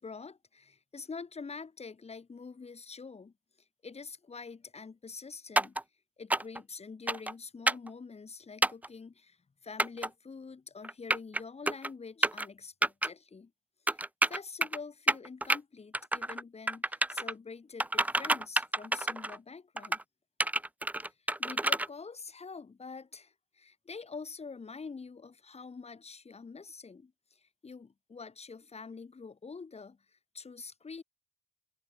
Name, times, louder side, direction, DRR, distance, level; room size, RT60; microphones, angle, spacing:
voice 1, 0.0-3.3 3.8-5.8 6.2-9.4 9.6-13.5 13.9-20.0 21.0-21.1 21.4-31.0, left 4 dB, 30° left, 4.4 m, -46 dB
sound 1, 5.6-5.8 6.3-6.6 7.1-7.3 7.7-7.9 8.6-8.9 9.8-10.1 10.8-11.4 11.7-11.9 12.2-12.5 12.8-13.1 13.9-14.8 15.1-15.6 15.9-16.4 16.7-17.3 17.8-19.4 19.8-20.0 20.4-21.9, right 1 dB, 5° right, 0.6 m, -29 dB
cardioid pair, 90°, 20 cm